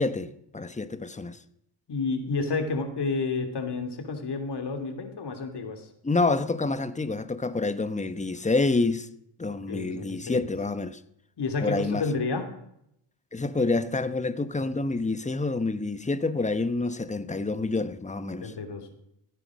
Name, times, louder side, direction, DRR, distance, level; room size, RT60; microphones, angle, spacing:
voice 1, 0.0-1.4 6.0-9.1 9.4-11.0 11.6-12.0 13.3-18.5, left 3 dB, 15° left, 0.9 m, -27 dB
voice 2, 1.9-5.9 9.5-10.5 11.4-12.4 18.4-19.0, left 3 dB, 55° left, 3.0 m, -30 dB
15.0 x 9.5 x 6.3 m
cardioid pair, 85°, 49 cm